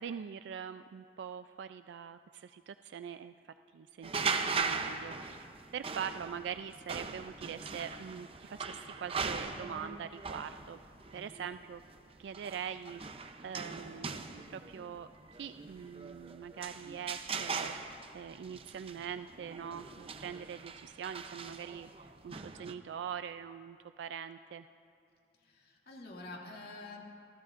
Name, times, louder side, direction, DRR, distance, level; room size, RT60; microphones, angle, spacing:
voice 1, 0.0-3.3 3.7-10.8 11.1-11.8 12.2-15.1 15.4-24.7, right 8 dB, 85° right, 10 dB, 0.3 m, -43 dB
sound 1, 4.0-22.8, right 4 dB, 35° right, 0.6 m, -40 dB
voice 2, 25.4-27.0, left 2 dB, 60° left, -2 dB, 2.1 m, -47 dB
27.5 x 15.0 x 2.5 m, 2.5 s
head